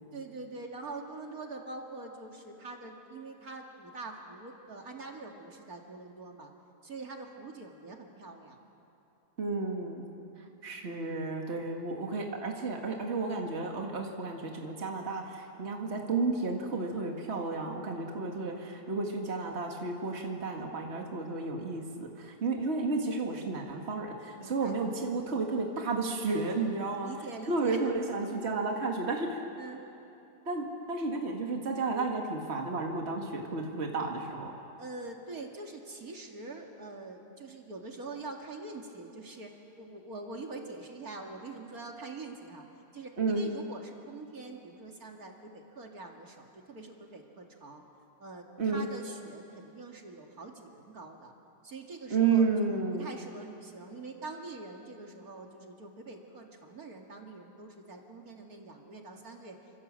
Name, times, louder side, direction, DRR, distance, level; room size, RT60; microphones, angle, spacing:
voice 1, 0.1-6.5 6.8-8.6 24.4-24.7 27.0-27.8 29.6-29.8 34.8-42.6 42.9-47.8 48.2-51.3 51.6-59.6, right 3 dB, 70° right, 1 dB, 2.7 m, -44 dB
voice 2, 9.4-10.0 10.6-27.1 27.5-29.4 30.5-34.5 43.2-43.5 48.6-48.8 52.1-53.1, right 4 dB, 45° right, 1 dB, 2.3 m, -32 dB
29.5 x 26.0 x 7.6 m, 3.0 s
omnidirectional pair, 1.6 m